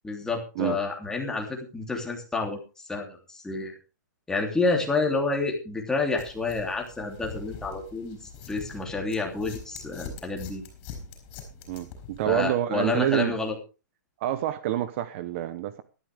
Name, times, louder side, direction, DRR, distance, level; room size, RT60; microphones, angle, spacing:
voice 1, 0.0-2.6 2.9-3.7 4.3-8.2 8.5-10.6 12.2-13.6, left 3 dB, 5° left, 3.0 m, -29 dB
sound 1, 6.2-12.5, left 5 dB, 35° left, 5.5 m, -43 dB
voice 2, 11.7-13.3 14.2-15.8, right 12 dB, 40° right, 0.9 m, -27 dB
15.5 x 12.5 x 3.5 m
hypercardioid pair, 145°, 10 cm